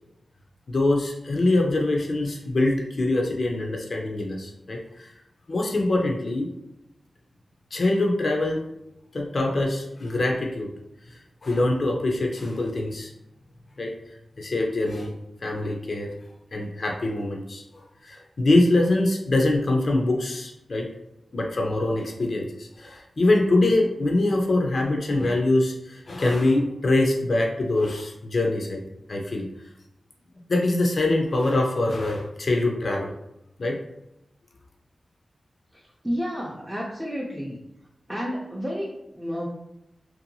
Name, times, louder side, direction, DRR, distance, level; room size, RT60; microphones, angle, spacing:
voice 1, 0.7-5.1 5.5-6.5 7.7-8.6 9.1-10.7 11.4-13.1 13.8-13.9 14.4-15.1 15.4-16.1 16.5-17.6 18.0-20.9 21.3-28.8 29.1-29.5 30.5-33.1 33.6-33.8, left 2 dB, 60° left, 0 dB, 0.4 m, -24 dB
voice 2, 35.7-37.6 38.1-39.5, equal, 5° right, -5 dB, 0.4 m, -31 dB
2.7 x 2.2 x 2.6 m, 0.88 s
cardioid pair, 65°, 0 cm